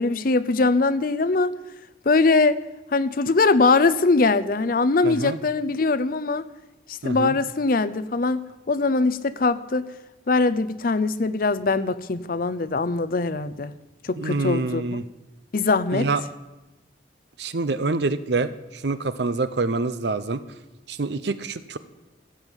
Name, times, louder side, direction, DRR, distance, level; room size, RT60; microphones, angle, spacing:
voice 1, 0.0-1.5 2.1-2.6 2.9-6.4 6.9-9.9 10.3-13.7 14.0-15.0 15.5-16.1, left 3 dB, 50° left, 15 dB, 0.5 m, -22 dB
voice 2, 5.0-5.4 7.0-7.3 14.2-15.0 15.9-16.2 17.4-20.4 20.9-21.8, right 3 dB, 60° right, 13 dB, 0.6 m, -26 dB
16.0 x 8.0 x 7.2 m, 1.1 s
head